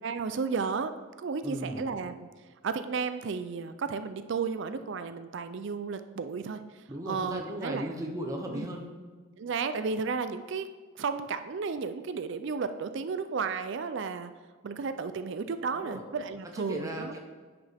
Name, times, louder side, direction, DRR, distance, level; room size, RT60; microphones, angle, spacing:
voice 1, 0.0-2.3 2.6-6.6 7.1-8.0 8.5-8.7 9.4-10.7 11.0-14.3 14.6-17.2, right 5 dB, 55° right, 10 dB, 0.4 m, -33 dB
voice 2, 1.4-1.8 6.9-8.9 15.7-16.0 16.5-17.2, equal, 15° right, 1 dB, 0.8 m, -36 dB
10.5 x 5.9 x 3.5 m, 1.4 s
head